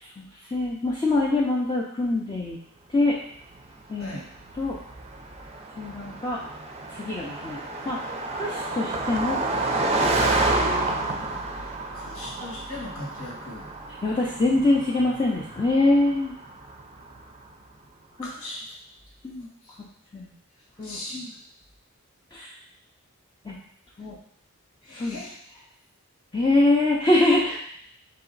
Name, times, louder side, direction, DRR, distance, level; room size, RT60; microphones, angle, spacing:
voice 1, 0.2-2.6 2.9-3.2 3.9-4.2 4.5-4.8 5.8-6.4 6.9-7.6 7.9-8.0 8.3-9.4 9.7-10.1 14.0-16.3 18.2-18.3 19.2-19.5 20.1-20.3 20.8-21.0 22.3-22.5 23.4-23.6 24.0-24.2 24.9-25.2 26.3-27.6, left 2 dB, 20° left, -5 dB, 0.5 m, -24 dB
Car passing by, 3.6-17.3, right 2 dB, 30° right, 0.5 m, -30 dB
voice 2, 11.9-13.7 18.2-18.6 19.7-19.8 20.8-21.3 24.8-25.4, left 2 dB, 75° left, -4 dB, 1.5 m, -38 dB
4.2 x 2.9 x 3.9 m, 0.67 s
head